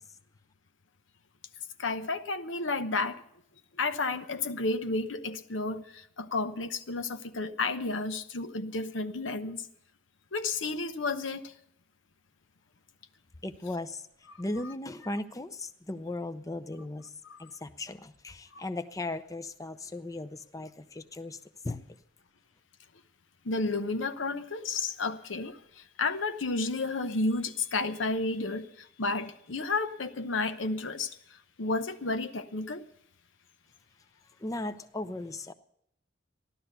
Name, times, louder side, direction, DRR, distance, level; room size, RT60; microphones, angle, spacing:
voice 1, 1.8-3.2 3.8-9.6 10.3-11.5 14.3-14.4 14.6-14.7 17.2-17.4 18.5-18.6 23.4-32.8, left 3 dB, 80° left, 0.9 m, -32 dB
voice 2, 13.4-14.0 14.4-17.1 17.4-21.4 21.6-21.8 34.4-35.5, left 2 dB, 20° left, 0.6 m, -37 dB
15.0 x 12.0 x 6.7 m
head